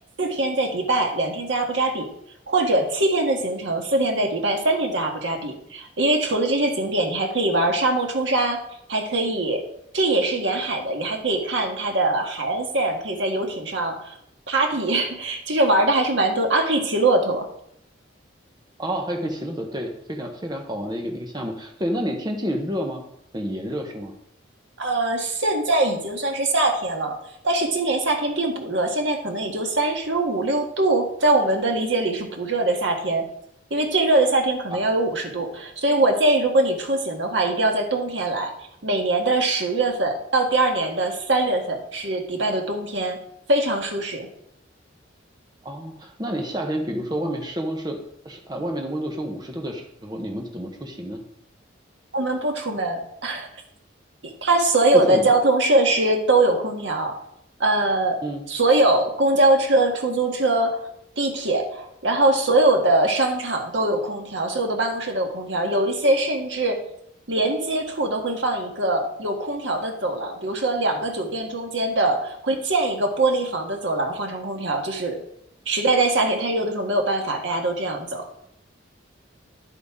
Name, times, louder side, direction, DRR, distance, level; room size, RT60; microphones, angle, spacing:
voice 1, 0.2-2.1 2.5-8.6 8.9-9.6 9.9-14.1 14.5-17.5 24.8-27.2 27.4-33.3 33.7-38.5 38.8-43.2 43.5-44.3 52.1-53.5 54.2-57.2 57.6-58.2 58.5-60.8 61.2-66.8 67.3-75.2 75.7-78.3, right 2 dB, 75° right, 2 dB, 1.7 m, -22 dB
voice 2, 18.8-23.0 23.3-24.1 45.6-48.0 48.2-51.2 54.9-55.3 58.2-58.4, equal, 20° right, 2 dB, 1.1 m, -29 dB
11.5 x 8.1 x 3.8 m, 0.75 s
head